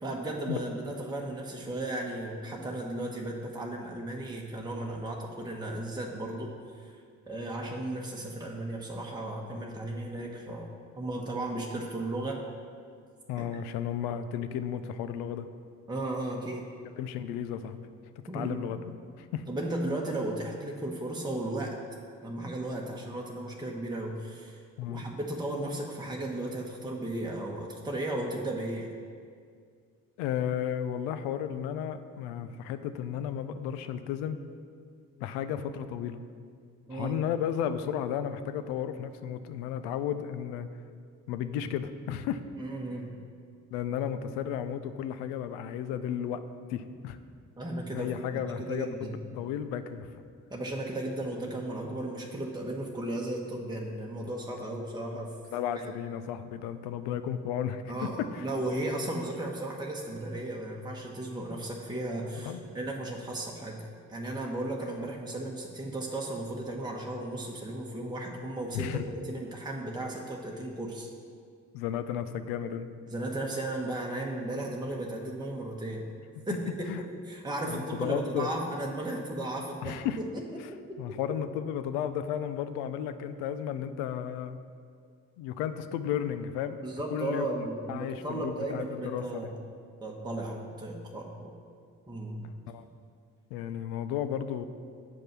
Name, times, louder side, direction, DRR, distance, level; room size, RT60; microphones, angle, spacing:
voice 1, 0.0-6.5 7.3-10.7 11.0-12.4 13.4-13.5 15.9-16.7 18.3-18.6 19.5-21.8 22.2-24.6 24.9-28.9 36.9-37.2 42.6-43.2 47.6-49.2 50.5-55.3 55.8-55.9 57.9-63.8 64.1-71.1 73.1-76.1 76.5-76.7 77.2-80.0 80.3-80.6 80.9-81.2 86.8-89.5 90.0-91.6 92.1-92.5, right 1 dB, 10° right, -2 dB, 1.2 m, -35 dB
voice 2, 13.3-15.5 16.8-17.8 18.3-19.5 24.8-25.0 30.2-34.4 35.2-36.2 36.9-40.7 41.3-42.4 43.7-46.4 46.7-47.2 47.9-48.9 49.3-50.2 55.5-58.5 62.5-62.6 68.7-69.1 71.7-72.9 76.9-77.0 77.7-78.5 79.6-80.2 80.6-80.7 81.0-84.6 85.4-86.8 87.1-87.5 87.9-89.5 92.7-92.9 93.5-94.7, left 9 dB, 85° left, 11 dB, 0.5 m, -33 dB
7.6 x 5.2 x 6.0 m, 2.1 s
hypercardioid pair, 40°, 40 cm